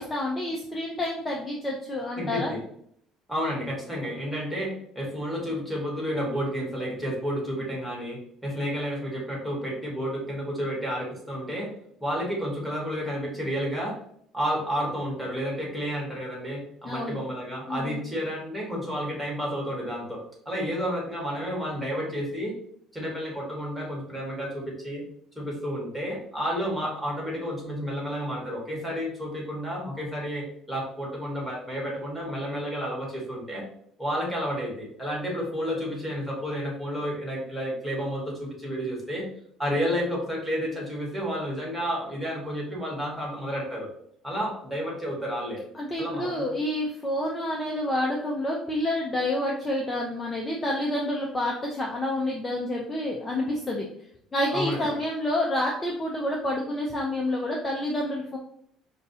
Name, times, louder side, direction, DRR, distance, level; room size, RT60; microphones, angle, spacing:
voice 1, 0.0-2.5 16.8-17.2 17.7-18.0 45.7-53.9 54.3-58.4, left 1 dB, 20° left, -1 dB, 0.6 m, -28 dB
voice 2, 2.1-2.6 3.3-11.7 12.0-14.0 14.3-22.5 22.9-25.0 25.3-33.6 34.0-39.3 39.6-43.9 44.2-45.6 46.0-46.5 54.5-55.0, equal, ahead, -4 dB, 1.5 m, -31 dB
5.2 x 2.3 x 2.7 m, 0.67 s
cardioid pair, 120°, 0 cm